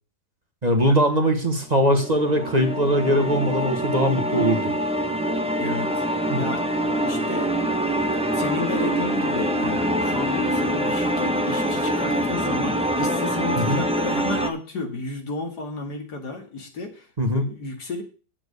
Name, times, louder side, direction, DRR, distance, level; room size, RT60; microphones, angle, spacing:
voice 1, 0.6-4.7 6.3-6.4 13.5-13.8 17.2-17.5, equal, 25° right, 5 dB, 1.4 m, -21 dB
sound 1, 1.7-14.5, equal, 5° right, 0.8 m, -25 dB
voice 2, 5.6-6.0 6.4-6.7 7.0-7.5 8.3-17.1 17.3-18.0, left 3 dB, 85° left, 4 dB, 2.7 m, -32 dB
9.1 x 7.5 x 6.6 m, 0.36 s
omnidirectional pair, 1.7 m